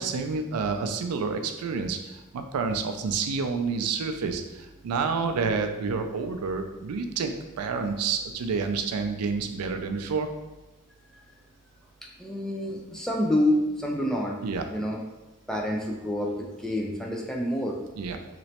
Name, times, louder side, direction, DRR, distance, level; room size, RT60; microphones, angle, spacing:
voice 1, 0.0-10.3 14.4-14.6 18.0-18.2, right 5 dB, 90° right, 6 dB, 0.4 m, -29 dB
voice 2, 12.0-14.4 14.7-15.0 15.5-17.8, left 1 dB, ahead, -1 dB, 0.3 m, -28 dB
3.1 x 2.9 x 2.8 m, 1.1 s
head